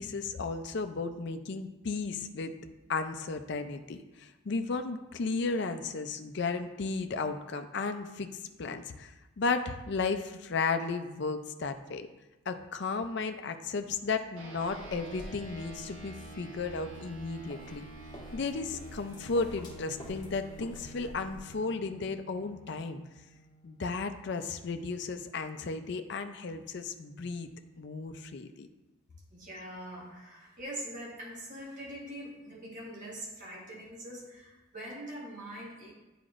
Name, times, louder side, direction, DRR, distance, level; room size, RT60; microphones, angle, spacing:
voice 1, 0.0-2.5 2.9-8.3 8.6-12.1 12.5-17.8 18.3-23.0 23.6-27.5 27.8-28.7, left 4 dB, 55° left, 7 dB, 0.5 m, -34 dB
sound 1, 14.4-24.1, right 2 dB, 80° right, 1.2 m, -49 dB
sound 2, 14.6-21.4, equal, 20° left, 1.1 m, -50 dB
voice 2, 29.3-35.9, right 1 dB, 40° right, -5 dB, 1.4 m, -43 dB
9.5 x 5.0 x 2.5 m, 1.0 s
head